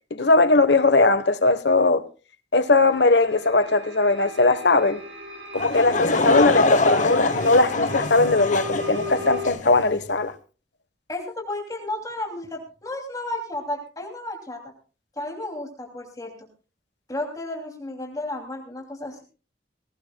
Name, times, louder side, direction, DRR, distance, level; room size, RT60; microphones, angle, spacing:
voice 1, 0.1-2.0 2.5-5.0 5.5-10.3, left 3 dB, 65° left, 1.2 m, -19 dB
sound 1, 2.7-9.5, left 1 dB, 80° right, 7.3 m, -37 dB
Laughter / Crowd, 5.6-9.8, left 2 dB, 45° left, 1.1 m, -24 dB
voice 2, 11.1-14.6 15.2-16.3 17.1-19.2, left 1 dB, 20° left, 2.8 m, -32 dB
19.5 x 17.5 x 2.3 m
head